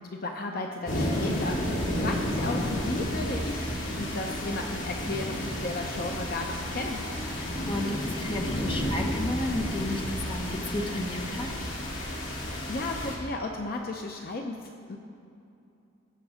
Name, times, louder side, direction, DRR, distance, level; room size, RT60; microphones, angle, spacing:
voice 1, 0.0-7.0 12.3-15.0, left 2 dB, 45° left, 2 dB, 0.7 m, -35 dB
sound 1, 0.9-13.1, left 1 dB, 75° left, 2.7 m, -31 dB
voice 2, 7.3-11.5, left 1 dB, 25° left, 2 dB, 1.0 m, -33 dB
17.0 x 6.9 x 5.0 m, 2.7 s
head